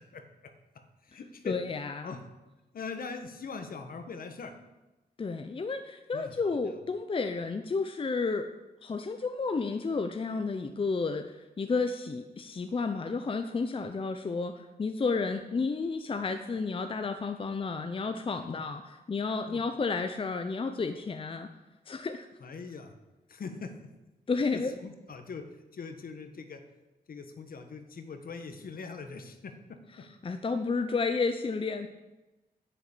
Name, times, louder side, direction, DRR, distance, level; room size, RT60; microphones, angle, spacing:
voice 1, 0.0-1.6 2.0-2.2 2.7-4.5 6.1-6.5 18.5-18.6 19.5-19.6 22.4-22.9 23.3-23.7 24.5-25.4 25.7-26.6 27.1-30.0, left 5 dB, 60° left, 7 dB, 1.6 m, -42 dB
voice 2, 1.4-2.2 5.2-8.5 8.8-21.5 21.9-22.3 24.3-24.7 30.2-31.9, left 4 dB, 35° left, 7 dB, 0.8 m, -31 dB
10.5 x 8.3 x 8.4 m, 1.1 s
wide cardioid pair, 110°, 16 cm